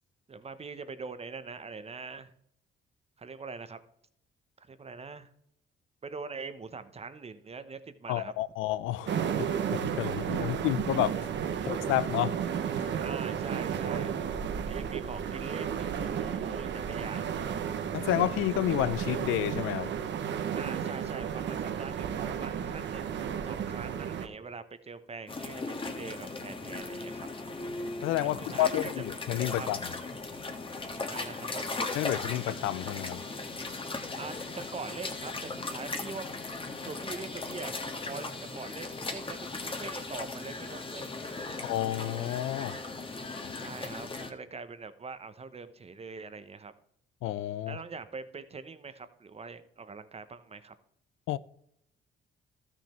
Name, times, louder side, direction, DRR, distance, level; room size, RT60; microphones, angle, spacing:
voice 1, 0.3-2.3 3.2-3.8 4.6-5.3 6.0-8.3 10.4-10.7 11.6-12.1 13.0-14.2 14.7-17.2 20.5-27.3 28.2-29.0 29.5-29.7 31.1-31.7 34.2-36.4 36.8-37.7 38.0-41.1 43.6-46.7 47.7-50.7, right 4 dB, 30° right, 0.9 m, -43 dB
voice 2, 8.1-11.3 11.7-12.4 12.7-13.0 17.9-19.9 28.0-29.9 31.9-33.2 41.6-42.8 43.4-43.5 47.2-47.8 51.3-51.4, left 14 dB, 90° left, 0.5 m, -30 dB
sound 1, 9.1-24.3, right 8 dB, 65° right, 1.0 m, -33 dB
sound 2, 25.3-44.3, left 3 dB, 25° left, 1.4 m, -38 dB
13.0 x 6.3 x 4.3 m
cardioid pair, 90°, 20 cm